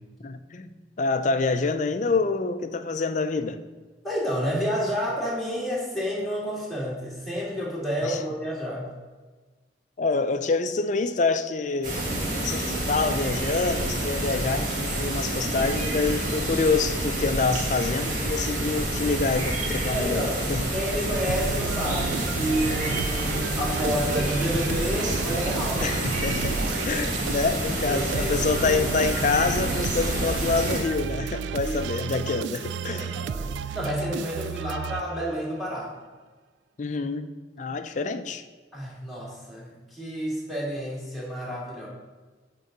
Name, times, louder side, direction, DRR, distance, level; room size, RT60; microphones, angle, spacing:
voice 1, 0.2-0.7 1.0-3.6 8.0-8.2 10.0-12.0 12.3-20.7 25.8-26.6 26.8-33.1 36.8-37.3 37.6-38.4, left 4 dB, 45° left, 0.4 m, -26 dB
voice 2, 4.0-8.9 19.9-20.4 20.7-25.9 27.9-28.9 31.6-31.8 32.9-35.9 38.7-41.9, equal, ahead, 2.2 m, -30 dB
sound 1, 11.8-30.8, right 1 dB, 50° right, 1.8 m, -28 dB
sound 2, 21.3-35.5, right 7 dB, 85° right, 0.3 m, -33 dB
8.0 x 3.8 x 6.6 m
head